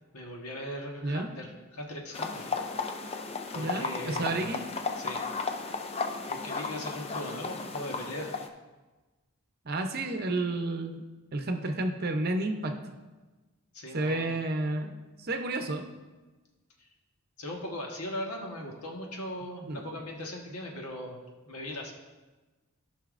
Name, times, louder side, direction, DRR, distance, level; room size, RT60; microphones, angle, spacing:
voice 1, 0.1-2.5 3.5-4.5 4.9-5.2 6.3-8.3 13.7-14.3 16.8-16.9 17.4-21.2 21.5-21.9, left 1 dB, 85° left, 0 dB, 1.4 m, -39 dB
sound 1, 2.1-8.5, left 4 dB, 25° left, 0.4 m, -34 dB
voice 2, 3.6-4.6 9.6-11.0 11.3-12.8 13.9-15.9 19.7-19.8, right 2 dB, 45° right, 5 dB, 0.7 m, -31 dB
14.5 x 5.7 x 2.5 m, 1.2 s
head